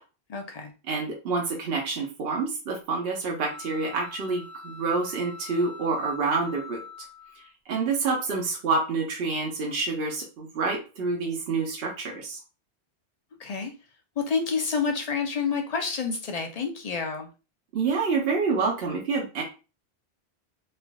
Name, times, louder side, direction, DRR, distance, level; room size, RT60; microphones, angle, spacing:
voice 1, 0.3-0.7 13.4-13.7 14.2-17.3, left 5 dB, 55° left, 4 dB, 0.4 m, -28 dB
voice 2, 0.9-6.8 7.7-12.4 17.7-19.4, right 4 dB, 70° right, -2 dB, 0.9 m, -27 dB
sound 1, 3.4-7.5, left 3 dB, 45° right, 0.9 m, -44 dB
3.3 x 2.4 x 2.2 m, 0.32 s
omnidirectional pair, 1.1 m